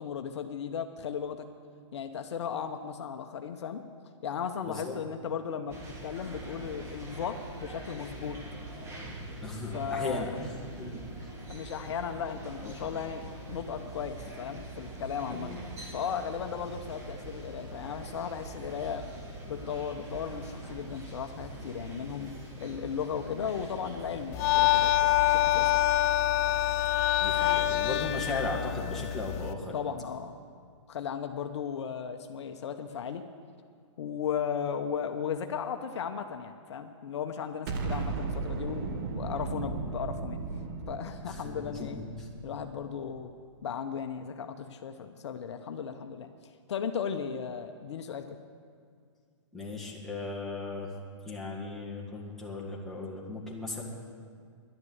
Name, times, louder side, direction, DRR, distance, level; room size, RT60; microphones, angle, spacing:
voice 1, 0.0-1.5 1.9-3.8 4.2-8.4 9.7-10.3 11.5-13.2 13.5-15.5 15.9-19.1 19.5-22.3 22.6-25.9 29.7-30.4 30.9-33.2 34.0-38.9 39.2-40.4 40.9-42.0 42.4-43.3 43.6-46.3 46.7-48.4, left 7 dB, 60° left, 7 dB, 0.8 m, -36 dB
voice 2, 4.6-4.9 9.4-11.3 12.6-12.7 15.3-15.6 27.2-29.7 41.3-42.3 49.5-50.9 51.3-53.8, left 2 dB, ahead, -5 dB, 1.8 m, -37 dB
sound 1, 5.7-24.9, right 2 dB, 15° right, 1.6 m, -43 dB
sound 2, 24.3-29.5, left 14 dB, 30° left, 0.5 m, -26 dB
Explosion, 37.7-42.8, right 4 dB, 40° right, 1.3 m, -35 dB
11.0 x 10.5 x 7.9 m, 2.1 s
hypercardioid pair, 145°, 16 cm